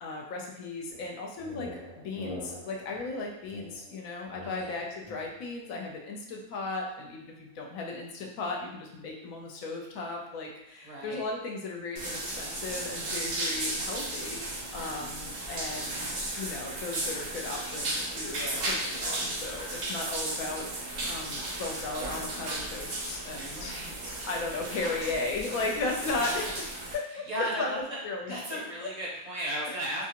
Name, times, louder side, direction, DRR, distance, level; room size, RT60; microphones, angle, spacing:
voice 1, 0.0-23.7 24.2-26.7 26.9-28.9, left 3 dB, 75° left, 0 dB, 1.0 m, -36 dB
sound 1, 0.9-5.6, left 1 dB, 45° left, 0.6 m, -44 dB
voice 2, 4.4-4.8 10.8-11.2 14.8-15.2 23.5-24.2 26.1-26.5 27.1-30.0, right 1 dB, 35° right, -6 dB, 0.7 m, -36 dB
sound 2, 12.0-27.0, right 2 dB, 90° right, 0.3 m, -35 dB
2.7 x 2.4 x 2.8 m, 0.90 s
omnidirectional pair, 1.5 m